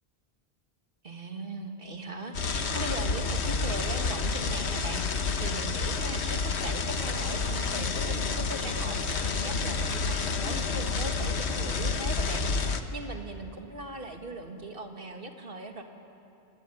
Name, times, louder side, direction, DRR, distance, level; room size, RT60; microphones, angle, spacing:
voice 1, 1.0-15.8, right 2 dB, 55° right, 4 dB, 2.3 m, -39 dB
sound 1, 2.3-12.8, left 4 dB, 85° left, 1.4 m, -29 dB
26.5 x 20.0 x 9.5 m, 2.8 s
omnidirectional pair, 1.1 m